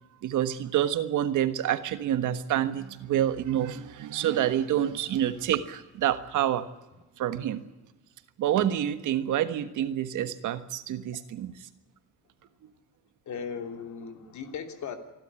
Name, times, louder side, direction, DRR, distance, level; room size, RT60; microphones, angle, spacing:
voice 1, 0.2-6.7 7.2-7.7 8.4-11.5, right 11 dB, 80° right, 11 dB, 1.5 m, -27 dB
voice 2, 13.3-15.0, left 6 dB, 70° left, 6 dB, 3.0 m, -37 dB
28.0 x 12.5 x 9.7 m, 1.1 s
cardioid pair, 90°, 30 cm